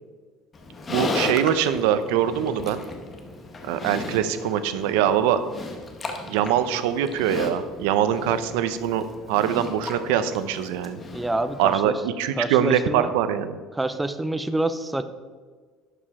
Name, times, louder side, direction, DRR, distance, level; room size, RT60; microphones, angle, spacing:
Livestock farm animals working animals, 0.5-11.8, left 2 dB, 20° left, 0.9 m, -35 dB
voice 1, 0.9-2.8 3.7-5.4 6.3-11.0 11.6-13.6, right 10 dB, 85° right, 11 dB, 0.7 m, -23 dB
voice 2, 11.1-11.9 12.4-13.1 13.7-15.0, right 2 dB, 5° right, 10 dB, 0.4 m, -27 dB
11.5 x 5.0 x 4.8 m, 1.5 s
cardioid pair, 165°, 0 cm